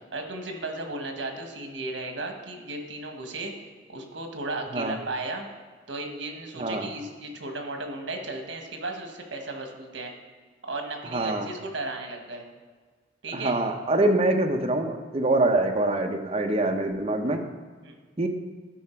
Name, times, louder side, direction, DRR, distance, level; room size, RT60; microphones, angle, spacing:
voice 1, 0.1-3.5 3.9-5.5 5.9-10.1 10.6-12.4 13.2-13.6 17.8-18.0, right 2 dB, 80° right, 4 dB, 1.4 m, -35 dB
voice 2, 6.6-6.9 11.1-11.5 13.3-17.4 18.2-18.3, right 2 dB, 30° right, 4 dB, 0.8 m, -24 dB
12.0 x 5.0 x 4.5 m, 1.4 s
head